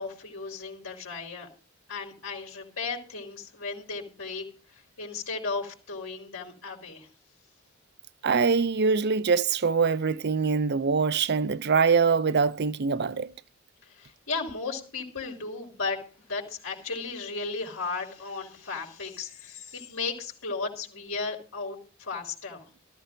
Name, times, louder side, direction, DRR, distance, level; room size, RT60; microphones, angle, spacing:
voice 1, 0.0-1.5 1.9-4.4 4.7-7.1 13.9-22.7, left 4 dB, 90° left, 4.1 m, -35 dB
voice 2, 8.2-13.3, right 5 dB, 55° right, 0.6 m, -24 dB
14.5 x 14.0 x 3.9 m
head